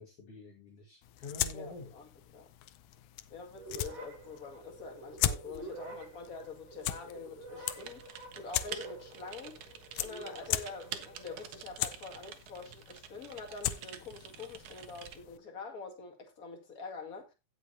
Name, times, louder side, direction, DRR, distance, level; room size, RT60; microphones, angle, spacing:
voice 1, 0.0-1.9, left 3 dB, 50° left, 2.7 m, -47 dB
sound 1, 1.0-15.4, left 12 dB, 75° left, 2.1 m, -40 dB
voice 2, 1.5-2.5 3.3-9.6 10.0-17.3, left 4 dB, 30° left, 2.2 m, -46 dB
sound 2, 3.6-11.6, right 2 dB, 55° right, 3.9 m, -49 dB
Typing, 7.8-15.2, right 10 dB, 75° right, 2.5 m, -48 dB
16.5 x 6.7 x 2.8 m
omnidirectional pair, 3.6 m